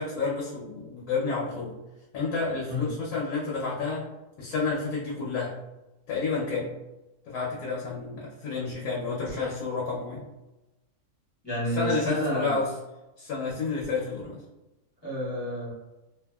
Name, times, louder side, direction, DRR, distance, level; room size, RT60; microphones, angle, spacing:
voice 1, 0.0-1.7 2.1-4.1 4.4-5.5 6.1-6.7 7.3-10.2 11.7-12.7 13.2-14.4, left 4 dB, 80° left, -5 dB, 1.2 m, -30 dB
voice 2, 11.4-12.6 15.0-15.7, equal, 20° left, -9 dB, 0.8 m, -29 dB
2.7 x 2.5 x 2.2 m, 0.99 s
omnidirectional pair, 1.6 m